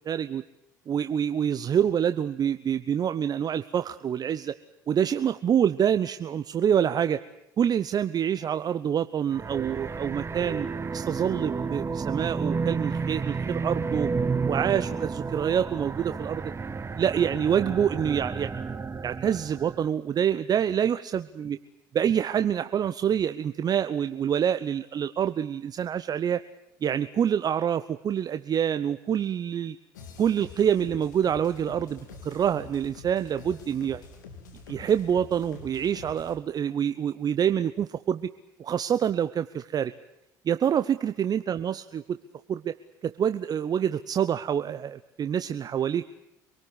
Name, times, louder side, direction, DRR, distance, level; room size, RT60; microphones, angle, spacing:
voice 1, 0.1-0.4 0.9-4.5 4.9-7.2 7.6-10.7 10.9-14.1 14.5-16.5 17.0-18.5 19.0-21.6 21.9-26.4 26.8-29.8 30.2-34.0 34.7-38.3 38.6-39.9 40.4-42.2 42.5-42.7 43.0-46.1, right 8 dB, 40° right, 11 dB, 0.9 m, -26 dB
sound 1, 9.3-19.9, right 5 dB, 25° right, 1.4 m, -31 dB
sound 2, 29.9-36.4, left 4 dB, 90° left, 3.3 m, -46 dB
26.0 x 19.0 x 9.8 m, 0.81 s
hypercardioid pair, 70°, 10 cm